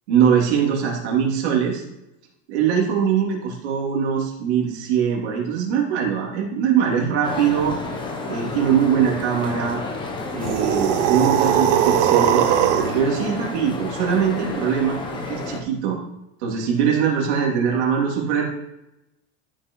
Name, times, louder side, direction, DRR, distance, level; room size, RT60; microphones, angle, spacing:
voice 1, 0.1-1.8 2.5-7.7 8.3-9.8 10.3-12.5 12.9-16.0 16.4-18.4, right 7 dB, 75° right, -2 dB, 2.9 m, -22 dB
sound 1, 7.2-15.6, left 3 dB, 15° left, 0.8 m, -31 dB
sound 2, 10.4-13.0, right 10 dB, 55° right, 0.7 m, -19 dB
13.5 x 6.1 x 3.1 m, 0.90 s
supercardioid pair, 175°, 34 cm